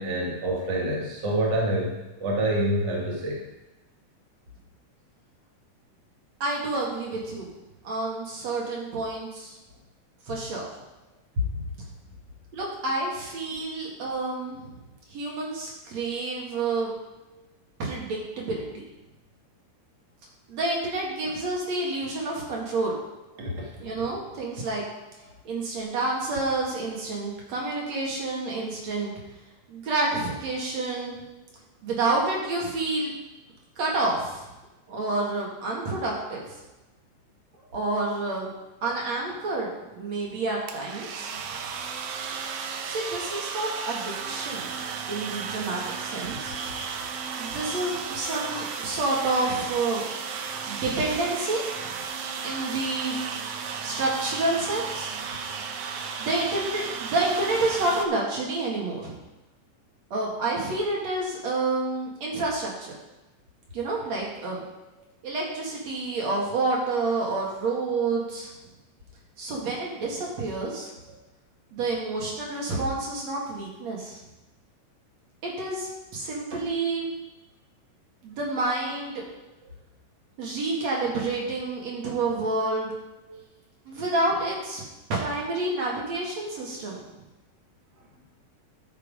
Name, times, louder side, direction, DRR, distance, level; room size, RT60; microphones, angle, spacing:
voice 1, 0.0-3.4 11.4-11.5 23.4-23.7 83.3-83.4, right 1 dB, 40° right, -3 dB, 1.9 m, -27 dB
voice 2, 6.4-7.5 7.8-9.5 10.3-10.7 12.5-14.7 15.1-16.9 17.8-18.6 20.5-23.0 23.8-24.8 25.4-29.1 29.7-31.2 31.8-33.1 33.8-34.5 34.9-36.6 37.7-38.5 38.8-41.3 42.9-44.7 45.1-46.5 47.4-50.0 50.7-51.6 52.4-53.2 53.8-55.1 55.9-59.1 60.1-63.0 63.7-64.6 65.2-68.5 69.4-70.9 71.7-74.2 75.4-77.1 78.2-79.2 80.4-82.9 83.9-84.8 85.1-87.0, right 2 dB, 55° right, -3 dB, 3.0 m, -29 dB
sound 1, 40.7-58.0, right 6 dB, 85° right, 1.3 m, -34 dB
13.0 x 5.6 x 5.1 m, 1.0 s
omnidirectional pair, 3.8 m